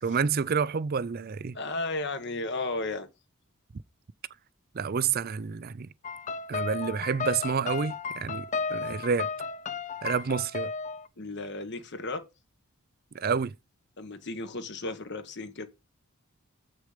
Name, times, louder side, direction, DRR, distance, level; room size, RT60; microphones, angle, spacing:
voice 1, 0.0-1.6 4.7-5.9 6.5-9.3 10.0-10.7 13.1-13.5, right 6 dB, 45° right, 0.5 m, -29 dB
voice 2, 1.5-3.1 11.2-12.3 14.0-15.7, left 2 dB, 55° left, 1.3 m, -34 dB
sound 1, 6.0-11.1, left 5 dB, 35° left, 0.5 m, -34 dB
8.0 x 6.4 x 5.0 m
head